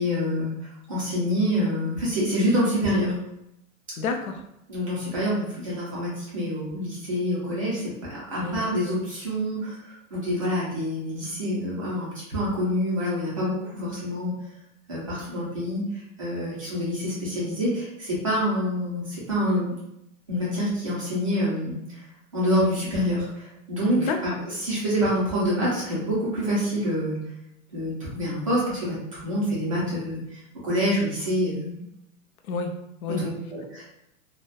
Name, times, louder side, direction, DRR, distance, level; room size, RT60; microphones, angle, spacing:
voice 1, 0.0-3.1 4.7-14.3 14.9-19.7 20.3-22.0 22.3-27.2 27.7-31.8 33.1-33.9, equal, 25° right, -8 dB, 0.4 m, -27 dB
voice 2, 4.0-4.4 8.4-9.0 24.0-24.2 32.5-33.2, left 4 dB, 85° left, 5 dB, 0.6 m, -30 dB
2.6 x 2.1 x 2.2 m, 0.81 s
supercardioid pair, 180°, 42 cm